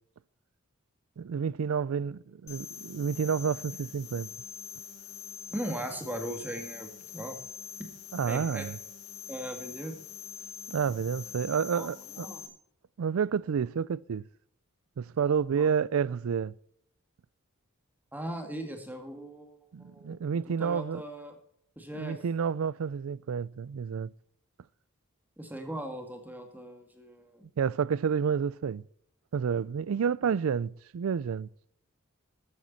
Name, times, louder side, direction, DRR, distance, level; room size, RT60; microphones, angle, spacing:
voice 1, 1.2-4.3 8.1-8.8 10.7-12.3 13.0-14.2 15.0-16.5 19.7-21.0 21.9-24.1 27.6-28.8 29.3-31.5, right 6 dB, 75° right, 0.4 m, -30 dB
sound 1, 2.5-12.5, left 6 dB, 75° left, 1.8 m, -44 dB
voice 2, 5.5-7.4 8.3-8.7 9.3-9.9 11.7-11.9 12.2-12.5 15.2-15.3 15.6-15.7 18.1-20.2 20.4-21.3 21.8-22.2 25.4-27.5, right 1 dB, 10° right, 2.0 m, -39 dB
13.5 x 9.4 x 4.1 m
head